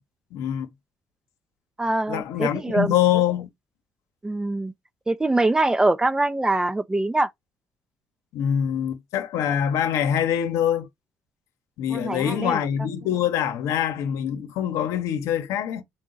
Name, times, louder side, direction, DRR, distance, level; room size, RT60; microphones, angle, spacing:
voice 1, 0.3-0.7 2.1-3.5 8.3-10.9 11.8-15.8, left 10 dB, 85° left, 0.8 m, -24 dB
voice 2, 1.8-2.9 4.2-4.7 5.1-7.3 11.9-12.6, right 2 dB, 15° right, 0.4 m, -23 dB
3.7 x 2.2 x 3.8 m
cardioid pair, 100°, 5 cm